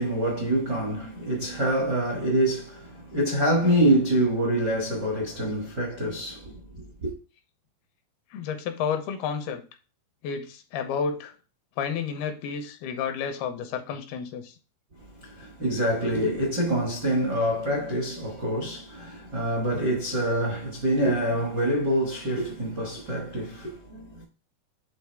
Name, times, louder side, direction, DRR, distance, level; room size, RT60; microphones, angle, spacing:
voice 1, 0.0-7.1 15.2-24.2, right 1 dB, 65° right, 1.0 m, -26 dB
voice 2, 8.3-9.6 10.2-11.3 11.8-14.5, left 6 dB, 80° left, 2.8 m, -31 dB
8.4 x 3.8 x 3.4 m
omnidirectional pair, 4.5 m